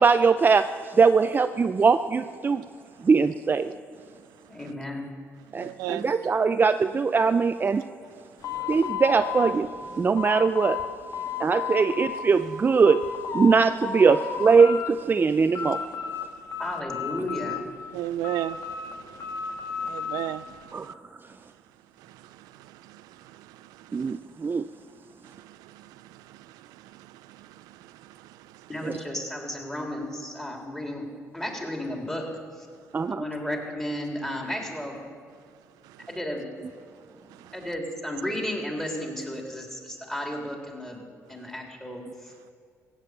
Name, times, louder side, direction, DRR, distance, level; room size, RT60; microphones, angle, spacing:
voice 1, 0.0-2.6 3.0-3.7 5.5-7.8 8.7-9.7 10.0-10.8 11.4-13.1 13.3-15.8 20.7-20.9 23.9-24.7 28.8-28.9 32.9-33.2, right 5 dB, 30° right, 10 dB, 0.5 m, -21 dB
voice 2, 4.5-5.1 16.6-17.6 28.7-31.1 31.3-32.2 32.6-32.7 33.1-35.1 36.1-36.4 37.5-41.0 41.3-42.3, left 1 dB, 10° left, 0 dB, 3.6 m, -33 dB
voice 3, 5.6-6.1 17.9-20.9 22.1-24.1 25.2-28.7 36.0-36.1, right 14 dB, 90° right, 14 dB, 0.4 m, -38 dB
sound 1, 8.4-10.9 11.1-12.2 12.6-13.5 13.8-14.9 15.2-16.2 16.5-17.8 18.2-20.3, left 7 dB, 65° left, 1.8 m, -33 dB
15.5 x 8.9 x 8.2 m, 2.2 s
supercardioid pair, 75°, 6 cm